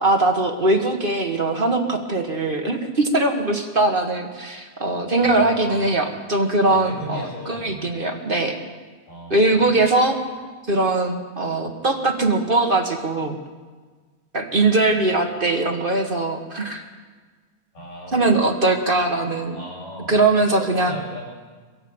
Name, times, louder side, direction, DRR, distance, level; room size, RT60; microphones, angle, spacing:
voice 1, 0.0-8.6 9.3-10.2 10.7-13.4 14.3-16.8 18.1-19.5 20.1-20.9, right 2 dB, 35° right, 3 dB, 0.9 m, -21 dB
voice 2, 5.2-6.0 6.7-7.9 9.1-9.8 14.9-15.2 17.7-18.4 19.5-21.2, left 1 dB, 65° left, -3 dB, 9.3 m, -37 dB
25.0 x 16.5 x 8.0 m, 1.5 s
omnidirectional pair, 3.6 m